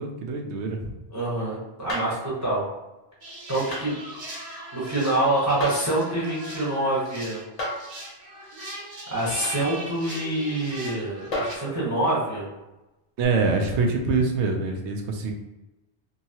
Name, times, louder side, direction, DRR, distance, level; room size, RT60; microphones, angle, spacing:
voice 1, 0.0-1.0 13.2-15.3, right 3 dB, 85° right, 3 dB, 0.9 m, -25 dB
voice 2, 1.1-2.6 3.5-3.9 4.7-7.4 9.1-12.5, right 1 dB, 15° right, -7 dB, 0.9 m, -26 dB
sound 1, 1.9-2.2 3.7-3.9 5.6-6.0 7.6-7.9 9.4-9.6 11.3-11.7 13.2-13.3, left 1 dB, 40° left, 0.7 m, -31 dB
sound 2, 3.2-11.6, right 1 dB, 45° right, 0.7 m, -39 dB
2.8 x 2.8 x 2.8 m, 1.0 s
omnidirectional pair, 1.1 m